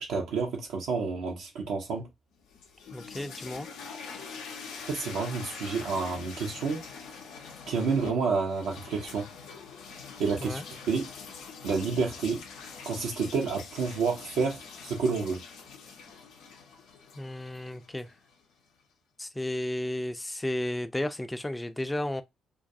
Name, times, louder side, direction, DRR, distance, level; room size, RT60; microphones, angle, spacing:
voice 1, 0.0-2.1 4.8-6.8 7.7-9.3 10.2-10.6 10.9-11.1 11.6-12.4 12.9-15.4, right 5 dB, 70° right, 0.5 m, -29 dB
sound 1, 2.4-18.4, left 5 dB, 75° left, 0.5 m, -44 dB
voice 2, 2.9-3.7 10.4-10.6 17.2-18.1 19.2-22.2, left 1 dB, 15° left, 0.4 m, -33 dB
2.3 x 2.2 x 2.6 m
hypercardioid pair, 45°, 0 cm